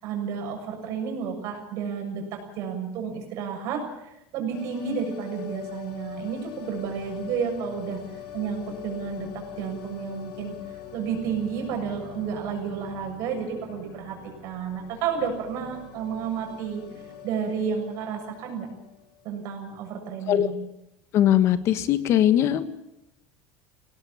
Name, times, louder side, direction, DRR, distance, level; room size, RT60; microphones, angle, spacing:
voice 1, 0.0-8.0 8.3-10.5 10.9-14.2 14.4-16.8 17.2-18.7 19.2-20.6, right 6 dB, 60° right, 3 dB, 7.0 m, -31 dB
sound 1, 4.5-19.4 19.7-19.8, left 9 dB, 70° left, 5.0 m, -43 dB
voice 2, 21.1-22.7, left 11 dB, 50° left, 11 dB, 1.6 m, -20 dB
20.5 x 18.0 x 8.5 m, 0.90 s
supercardioid pair, 130°, 6 cm